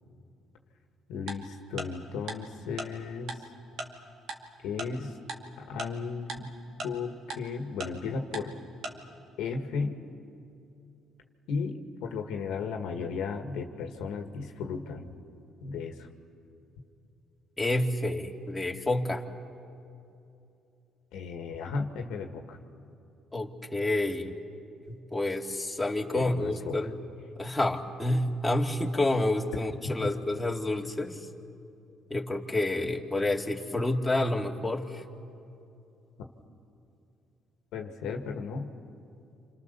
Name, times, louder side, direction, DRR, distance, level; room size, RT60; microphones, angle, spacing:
voice 1, 1.1-3.4 4.6-5.2 5.7-6.5 6.8-8.5 9.4-10.0 11.5-15.1 15.6-16.1 21.1-22.6 26.1-26.8 29.8-30.1 37.7-38.7, left 5 dB, 80° left, 4 dB, 1.8 m, -35 dB
Tick-tock, 1.3-1.4 1.8-1.9 2.3-2.4 2.8-2.9 3.3-3.4 3.8-3.9 4.3-4.4 4.8-4.9 5.3-5.4 5.8-5.9 6.3-6.4 6.8-6.9 7.3-7.4 7.8-7.9 8.3-8.4 8.8-8.9, right 3 dB, 65° right, 2.4 m, -35 dB
voice 2, 17.6-19.2 23.3-24.4 24.9-26.9 27.4-31.2 32.1-35.0, left 1 dB, 10° left, 0 dB, 2.4 m, -29 dB
29.0 x 27.0 x 6.9 m, 2.7 s
supercardioid pair, 75°, 0 cm